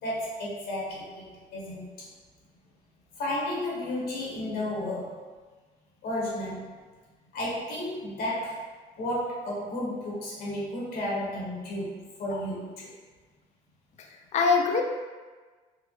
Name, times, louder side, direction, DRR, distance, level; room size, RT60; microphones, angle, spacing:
voice 1, 0.0-2.1 3.2-5.2 6.0-6.7 7.3-12.9, left 1 dB, 70° left, -5 dB, 1.0 m, -33 dB
voice 2, 14.0-14.8, left 5 dB, 45° left, 2 dB, 0.4 m, -25 dB
3.9 x 2.0 x 3.0 m, 1.4 s
cardioid pair, 110°, 17 cm